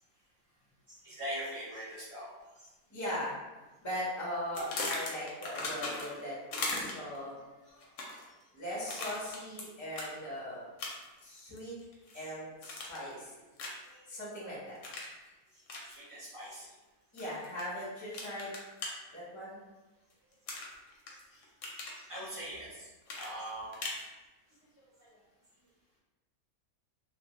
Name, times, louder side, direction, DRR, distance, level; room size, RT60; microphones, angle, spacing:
voice 1, 1.0-2.3 15.9-16.6 22.1-22.7 23.2-23.8, right 1 dB, 55° right, -7 dB, 0.3 m, -41 dB
voice 2, 2.9-3.3 3.8-7.8 8.5-10.7 11.2-11.7 12.1-13.3 14.1-14.8 17.1-18.5 19.1-19.6, equal, 20° left, -7 dB, 0.5 m, -39 dB
sound 1, 4.5-6.2 6.5-7.2 7.8-8.3 8.9-9.6 9.9-10.1 10.8-11.2 11.6-12.2 12.6-13.1 13.6-13.9 14.8-15.1 15.7-15.8 17.2-17.6 18.1-18.9 20.5-21.1 21.4-22.0 23.1-24.0, left 2 dB, 65° left, 0.8 m, -38 dB
2.4 x 2.2 x 2.9 m, 1.1 s
omnidirectional pair, 1.5 m